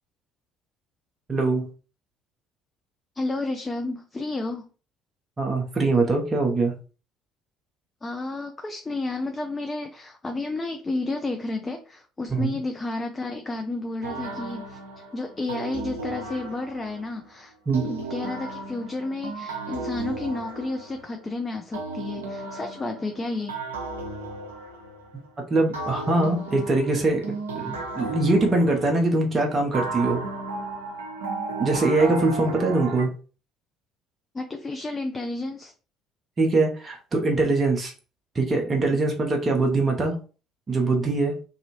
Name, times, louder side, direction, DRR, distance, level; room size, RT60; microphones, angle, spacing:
voice 1, 1.3-1.7 5.4-6.7 12.3-12.6 17.7-17.8 25.5-27.2 27.5-30.2 31.6-33.1 36.4-37.9 38.3-40.2 40.7-41.3, right 3 dB, 30° right, 2 dB, 0.7 m, -22 dB
voice 2, 3.2-4.7 8.0-14.8 15.1-17.5 17.8-23.6 34.3-35.7, left 2 dB, 20° left, 5 dB, 0.4 m, -31 dB
sound 1, 14.0-17.1 17.7-21.3 21.7-25.3 25.7-29.2 29.7-33.1, right 3 dB, 75° right, 0.5 m, -34 dB
2.7 x 2.5 x 2.9 m, 0.35 s
figure-of-eight pair, 55°, 0 cm